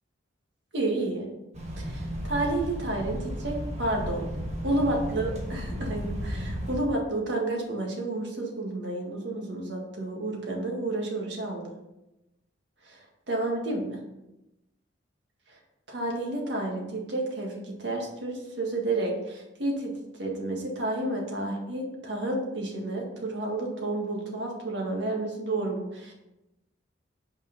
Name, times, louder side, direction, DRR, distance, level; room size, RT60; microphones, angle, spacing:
voice 1, 0.7-1.3 1.8-4.2 4.6-11.7 12.8-14.0 15.5-15.6 15.9-19.9 20.2-26.1, right 2 dB, 65° right, 0 dB, 1.7 m, -30 dB
sound 1, 1.5-6.8, equal, 35° right, 1.4 m, -34 dB
5.6 x 5.2 x 5.2 m, 0.93 s
head